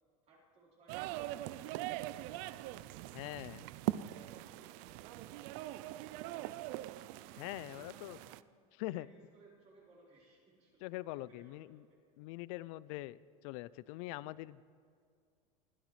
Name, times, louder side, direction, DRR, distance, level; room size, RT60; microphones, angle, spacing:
voice 1, 0.2-3.0 3.7-6.8 7.6-8.4 8.9-12.0, right 3 dB, 35° right, -4 dB, 3.9 m, -64 dB
sound 1, 0.9-8.4, right 15 dB, 60° right, 0.4 m, -42 dB
voice 2, 3.1-3.7 7.4-8.2 8.7-9.1 10.8-11.8 12.2-14.6, left 18 dB, 65° left, 20 dB, 0.4 m, -43 dB
20.5 x 12.0 x 3.2 m, 2.3 s
supercardioid pair, 130°, 18 cm